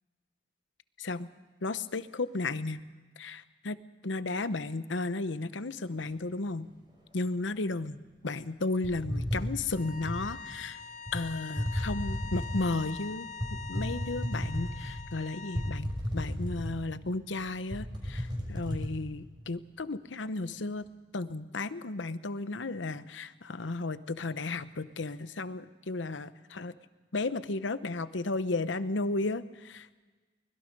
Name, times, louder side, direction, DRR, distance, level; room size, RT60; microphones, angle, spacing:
voice 1, 1.6-2.8 3.2-3.8 4.0-6.7 7.1-10.8 11.1-20.8 21.1-26.7 27.1-29.9, left 3 dB, 75° left, 13 dB, 0.9 m, -34 dB
sound 1, 8.8-10.3 11.1-11.2 11.6-12.7 13.4-15.1 15.5-17.0 17.3-17.4 17.7-18.9, equal, 25° right, 5.8 m, -33 dB
sound 2, 9.7-15.8, left 5 dB, 40° left, 1.0 m, -44 dB
24.5 x 21.0 x 5.3 m, 1.3 s
head